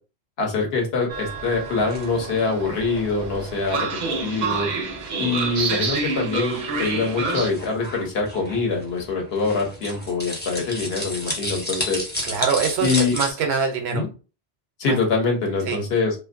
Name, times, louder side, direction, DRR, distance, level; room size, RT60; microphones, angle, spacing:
voice 1, 0.4-3.8 4.2-4.7 5.2-12.0 12.8-13.2 13.9-14.1 14.8-16.1, left 4 dB, 75° left, 1 dB, 1.0 m, -24 dB
Train, 1.1-7.5, right 4 dB, 55° right, 0.5 m, -28 dB
sound 1, 1.6-13.3, left 1 dB, 15° left, 0.5 m, -34 dB
voice 2, 12.2-14.0 14.9-15.0 15.6-15.8, right 6 dB, 85° right, 4 dB, 0.8 m, -24 dB
2.5 x 2.3 x 2.4 m, 0.33 s
omnidirectional pair, 1.1 m